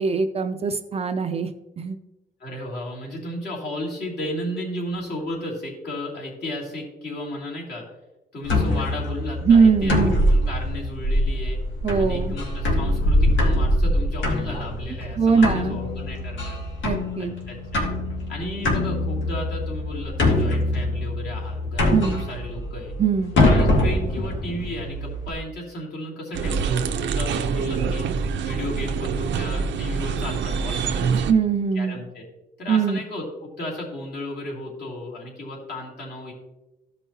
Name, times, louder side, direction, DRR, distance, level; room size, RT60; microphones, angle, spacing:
voice 1, 0.0-1.5 1.8-2.0 9.4-10.2 11.8-12.4 15.2-15.8 16.8-17.3 21.9-22.2 23.0-23.4 31.1-32.0 32.7-33.0, right 5 dB, 35° right, 8 dB, 0.4 m, -21 dB
voice 2, 2.4-7.8 8.3-9.9 10.3-11.6 12.0-16.6 17.2-17.8 18.3-21.9 22.3-22.9 23.4-28.1 28.4-31.4 31.8-32.2 32.6-36.3, left 1 dB, 60° left, -4 dB, 2.7 m, -34 dB
sound 1, 8.4-25.3, left 1 dB, 85° left, 1.8 m, -23 dB
sound 2, 26.3-31.3, right 6 dB, 80° right, 0.6 m, -25 dB
14.0 x 5.4 x 2.8 m, 1.0 s
wide cardioid pair, 180°, 19 cm